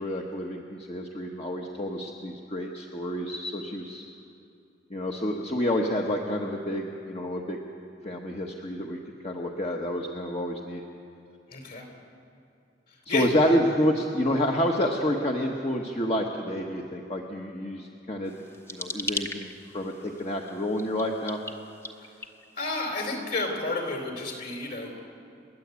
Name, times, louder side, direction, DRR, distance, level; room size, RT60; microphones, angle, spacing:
voice 1, 0.0-4.0 4.9-7.6 8.0-10.8 13.1-18.3 18.7-21.4, equal, 35° left, 0 dB, 1.2 m, -29 dB
voice 2, 11.5-11.8 13.1-13.6 22.6-25.0, left 2 dB, 55° left, 2 dB, 4.0 m, -31 dB
sound 1, 18.2-22.9, left 2 dB, 15° left, 1.0 m, -39 dB
30.0 x 10.5 x 8.3 m, 2.7 s
head